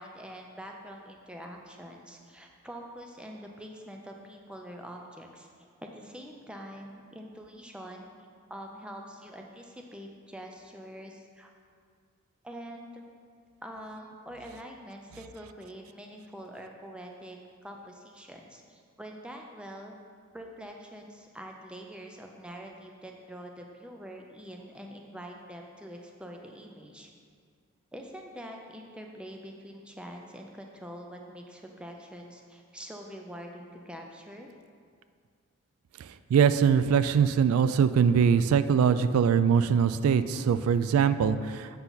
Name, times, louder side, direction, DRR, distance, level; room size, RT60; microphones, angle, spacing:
voice 1, 0.0-5.5 5.8-8.1 8.5-11.5 12.4-13.0 13.6-19.9 20.3-27.1 27.9-34.5, equal, 5° right, 1 dB, 0.5 m, -45 dB
voice 2, 36.0-41.7, right 7 dB, 85° right, 14 dB, 0.3 m, -23 dB
8.0 x 5.7 x 4.0 m, 2.2 s
head